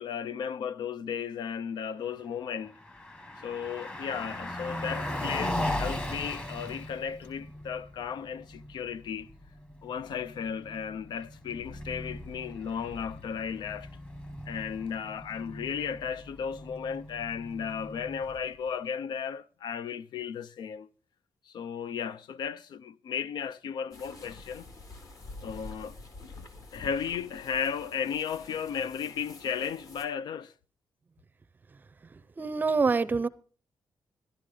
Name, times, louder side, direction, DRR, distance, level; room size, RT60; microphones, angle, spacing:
voice 1, 0.0-2.8 3.4-9.3 9.8-13.9 14.5-20.9 21.5-24.7 25.4-26.0 26.4-26.5 26.7-30.5, left 7 dB, 85° left, 0.6 m, -35 dB
Car passing by, 2.6-18.7, left 1 dB, 20° left, 1.3 m, -38 dB
sound 1, 23.9-30.1, left 2 dB, 55° left, 2.2 m, -47 dB
voice 2, 32.4-33.3, right 4 dB, 25° right, 0.5 m, -25 dB
12.5 x 12.0 x 5.0 m
wide cardioid pair, 175°, 7 cm